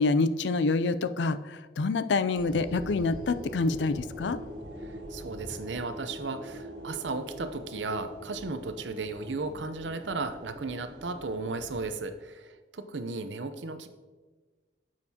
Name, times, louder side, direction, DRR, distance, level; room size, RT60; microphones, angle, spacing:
voice 1, 0.0-4.4, left 3 dB, 80° left, 13 dB, 0.4 m, -27 dB
sound 1, 2.3-12.0, equal, 25° right, 2.3 m, -42 dB
voice 2, 4.8-13.9, right 3 dB, 85° right, 9 dB, 0.7 m, -35 dB
10.5 x 7.4 x 2.8 m, 1.3 s
head